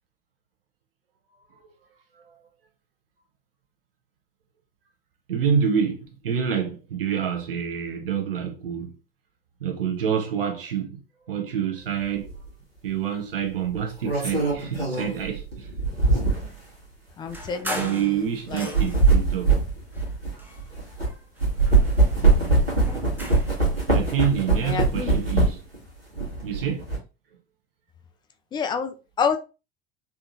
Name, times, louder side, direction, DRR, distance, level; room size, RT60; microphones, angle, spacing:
voice 1, 5.3-8.9 9.6-11.0 11.3-12.3 12.8-15.7 17.7-19.6 21.0-21.1 21.8-22.1 23.9-25.6 26.4-26.9, right 8 dB, 70° right, 0.9 m, -27 dB
sound 1, 12.2-12.4 13.7-16.6 17.3-17.4 18.5-21.1 21.4-25.8 26.1-27.0, right 3 dB, 85° right, 1.5 m, -22 dB
voice 2, 17.2-18.1 18.5-18.7 24.6-25.2 28.5-29.4, left 6 dB, 15° left, 0.3 m, -28 dB
sound 2, 17.3-19.2 19.9-21.0 21.4-23.6, equal, 5° right, 0.7 m, -37 dB
3.5 x 2.8 x 2.6 m
figure-of-eight pair, 75°, 29 cm